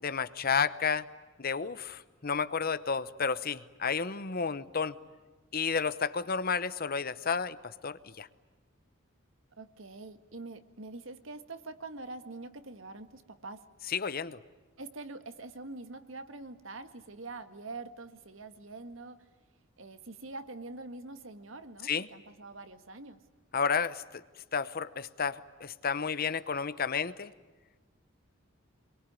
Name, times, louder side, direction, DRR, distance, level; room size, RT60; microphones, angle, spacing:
voice 1, 0.0-1.1 1.4-4.9 5.5-7.6 7.8-8.3 13.9-14.4 21.8-22.1 23.5-24.2 24.5-27.3, left 6 dB, 50° left, 15 dB, 0.9 m, -31 dB
voice 2, 9.6-13.7 14.8-19.3 19.8-23.2, right 3 dB, 80° right, 9 dB, 1.8 m, -45 dB
26.0 x 22.5 x 9.5 m, 1.3 s
head